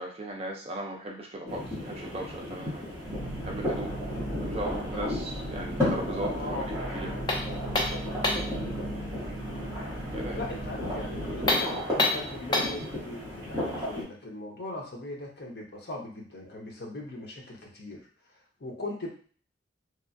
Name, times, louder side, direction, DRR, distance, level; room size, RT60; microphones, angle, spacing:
voice 1, 0.0-2.8 3.4-3.9 4.4-6.6 6.9-7.1 10.1-10.4, right 1 dB, 30° right, 1 dB, 0.4 m, -37 dB
sound 1, 1.5-14.0, left 1 dB, 15° right, 1.1 m, -34 dB
sound 2, 3.0-11.5, right 1 dB, 5° left, 0.9 m, -37 dB
voice 2, 6.3-7.6 9.2-9.9 10.3-18.1 18.6-19.1, left 2 dB, 55° left, -1 dB, 0.8 m, -40 dB
sound 3, 7.3-8.6 11.4-12.8, left 2 dB, 25° left, 0.4 m, -27 dB
3.0 x 2.3 x 2.5 m, 0.43 s
head